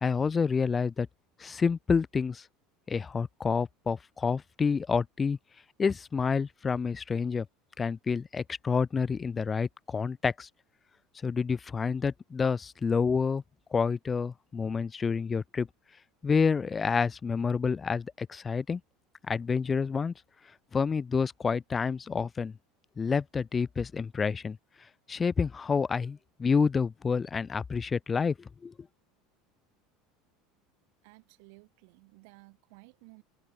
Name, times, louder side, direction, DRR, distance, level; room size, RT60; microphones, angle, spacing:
voice 1, 0.0-1.1 1.4-2.4 2.9-5.4 5.8-7.5 7.8-10.5 11.2-13.4 13.7-15.7 16.2-18.8 19.3-20.1 20.7-22.5 23.0-24.6 25.1-28.3 28.6-28.7, left 5 dB, 25° left, 0.4 m, -28 dB
voice 2, 31.0-33.2, right 32 dB, 70° right, 5.1 m, -55 dB
hypercardioid pair, 95°, 0 cm